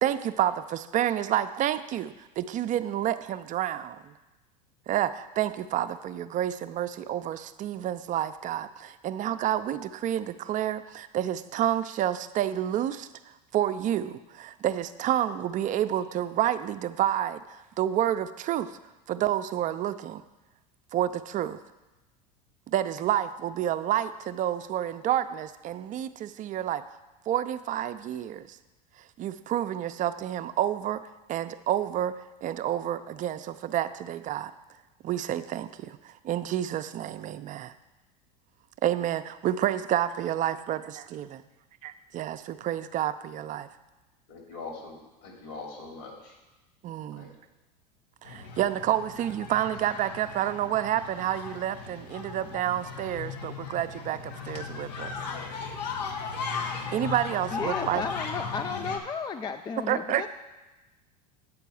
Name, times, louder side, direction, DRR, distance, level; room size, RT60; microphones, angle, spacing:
voice 1, 0.0-4.1 4.9-18.8 19.1-20.2 20.9-21.6 22.7-26.8 27.3-28.6 29.2-31.0 31.3-34.5 35.0-37.7 38.8-41.4 41.8-43.7 46.8-47.4 48.2-55.1 56.9-58.0 59.9-60.3, right 11 dB, 40° right, 11 dB, 0.5 m, -29 dB
voice 2, 44.3-46.3 47.1-47.3, left 3 dB, 65° left, -1 dB, 3.0 m, -42 dB
sound 1, 48.2-59.0, left 5 dB, 85° left, 1.0 m, -37 dB
voice 3, 57.5-60.3, left 5 dB, 20° left, 8 dB, 0.3 m, -33 dB
8.3 x 4.6 x 7.0 m, 1.1 s
hypercardioid pair, 95°, 21 cm